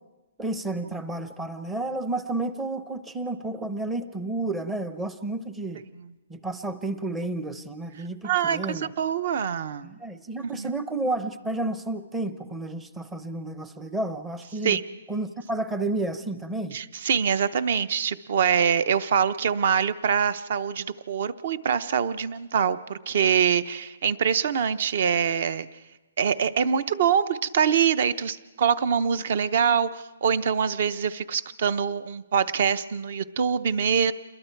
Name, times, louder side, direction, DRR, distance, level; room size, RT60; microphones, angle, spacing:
voice 1, 0.4-5.8 6.3-8.9 9.8-14.8 15.1-16.8, right 2 dB, 5° right, 11 dB, 0.7 m, -31 dB
voice 2, 8.2-9.9 10.4-10.7 14.6-14.8 16.7-25.7 26.2-34.1, right 7 dB, 45° right, 16 dB, 0.8 m, -24 dB
28.5 x 22.0 x 4.6 m, 1.1 s
hypercardioid pair, 175°, 0 cm